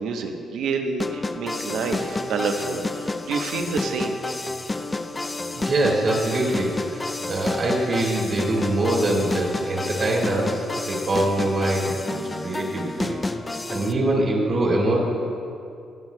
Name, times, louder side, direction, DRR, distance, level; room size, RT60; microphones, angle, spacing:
voice 1, 0.0-4.2, right 4 dB, 80° right, 4 dB, 0.9 m, -28 dB
sound 1, 1.0-13.9, left 2 dB, 20° left, 0.4 m, -30 dB
voice 2, 5.5-13.2 13.7-15.0, right 1 dB, 55° right, -3 dB, 2.1 m, -24 dB
21.5 x 7.4 x 2.2 m, 2.5 s
cardioid pair, 90°, 0 cm